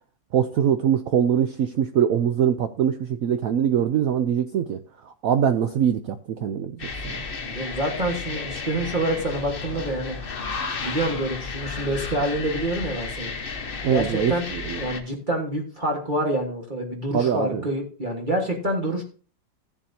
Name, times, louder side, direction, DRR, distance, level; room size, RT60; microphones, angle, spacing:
voice 1, 0.3-7.3 13.8-14.8 17.1-17.7, right 9 dB, 70° right, 9 dB, 0.8 m, -23 dB
sound 1, 6.8-15.0, left 4 dB, 40° left, 0.8 m, -33 dB
voice 2, 7.4-10.2 10.8-13.3 13.9-14.4 14.8-19.0, right 1 dB, 30° right, 0 dB, 1.5 m, -27 dB
14.5 x 7.1 x 2.7 m, 0.38 s
omnidirectional pair, 2.0 m